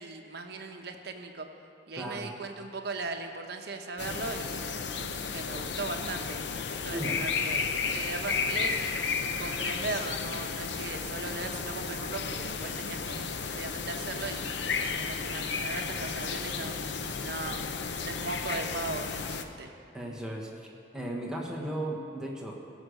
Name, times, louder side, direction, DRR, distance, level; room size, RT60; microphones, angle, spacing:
voice 1, 0.0-1.5 1.9-6.4 6.8-7.6 7.9-9.0 9.4-14.5 15.0-16.7 17.2-17.6 18.0-19.7, right 3 dB, 60° right, 4 dB, 1.0 m, -38 dB
voice 2, 2.0-2.3 6.9-7.2 19.9-20.7 20.9-22.6, right 1 dB, 5° right, -2 dB, 1.3 m, -36 dB
sound 1, 4.0-19.4, left 5 dB, 75° left, 0.7 m, -33 dB
16.5 x 6.5 x 6.5 m, 2.5 s
head